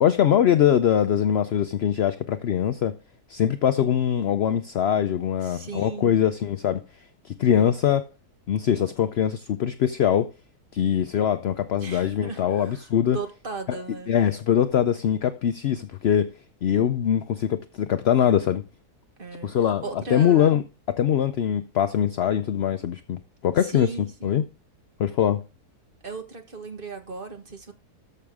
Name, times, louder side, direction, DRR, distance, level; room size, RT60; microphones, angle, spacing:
voice 1, 0.0-2.9 3.3-6.8 7.2-8.0 8.5-10.3 10.7-13.2 13.7-13.8 14.1-16.3 16.6-18.6 19.4-19.8 20.1-20.6 20.9-24.4 25.0-25.4, left 9 dB, 60° left, 0.6 m, -22 dB
voice 2, 5.4-6.2 7.5-7.7 11.8-14.2 19.2-20.5 22.5-22.6 23.6-24.5 26.0-27.7, right 4 dB, 35° right, 1.6 m, -37 dB
13.5 x 6.4 x 3.5 m
omnidirectional pair, 1.7 m